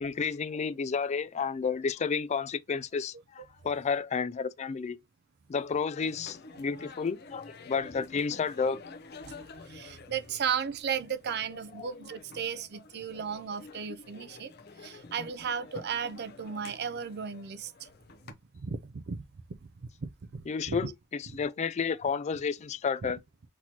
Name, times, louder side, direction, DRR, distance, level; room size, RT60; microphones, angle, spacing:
voice 1, 0.0-5.0 5.5-8.8 11.8-11.9 20.5-23.2, left 5 dB, 30° left, 0.3 m, -31 dB
sound 1, 5.9-18.3, left 3 dB, 50° left, 0.7 m, -49 dB
voice 2, 9.7-14.5 14.8-17.9 18.3-19.2 19.6-19.7 20.3-20.9 21.3-21.4 23.0-23.1, right 7 dB, 50° right, 0.5 m, -35 dB
5.9 x 3.0 x 2.8 m
head